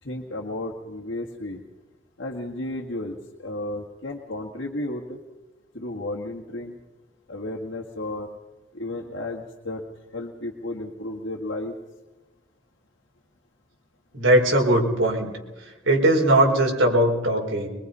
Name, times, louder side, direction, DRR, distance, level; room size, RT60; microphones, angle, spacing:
voice 1, 0.0-1.6 2.2-5.2 5.7-6.8 7.3-8.3 8.7-9.8 10.1-11.7, left 1 dB, 65° left, -2 dB, 1.8 m, -33 dB
voice 2, 14.1-15.3 15.6-17.7, right 1 dB, 85° right, 0 dB, 5.0 m, -20 dB
23.5 x 22.0 x 5.5 m, 1.2 s
head